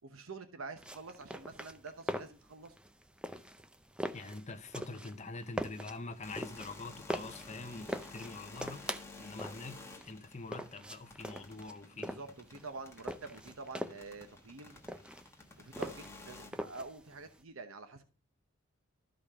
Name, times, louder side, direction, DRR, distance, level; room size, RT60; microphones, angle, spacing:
voice 1, 0.0-2.8 12.0-14.8 15.6-18.0, right 3 dB, 85° right, 1.0 m, -47 dB
sound 1, 0.8-17.4, equal, 5° right, 0.5 m, -43 dB
voice 2, 4.1-8.8 9.2-12.2, left 3 dB, 35° left, 0.9 m, -45 dB
sound 2, 6.1-16.5, left 3 dB, 15° left, 1.4 m, -53 dB
13.0 x 5.2 x 3.6 m
head